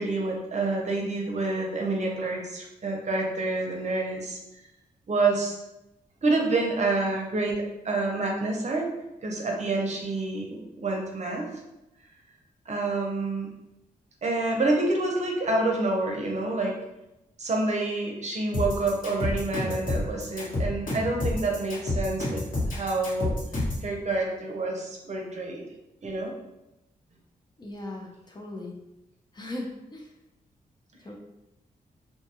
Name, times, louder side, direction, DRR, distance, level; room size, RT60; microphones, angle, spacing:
voice 1, 0.0-4.4 5.1-5.5 6.2-8.9 9.2-11.5 12.7-13.5 14.2-16.7 17.4-22.4 22.7-23.4 23.8-25.6 26.0-26.3, right 2 dB, 50° right, 0 dB, 0.6 m, -28 dB
sound 1, 18.5-23.8, left 2 dB, 60° left, 1.3 m, -29 dB
voice 2, 27.6-28.7 29.3-30.1 31.0-31.1, left 1 dB, 30° left, 0 dB, 0.5 m, -38 dB
2.6 x 2.3 x 2.8 m, 0.92 s
cardioid pair, 60°, 15 cm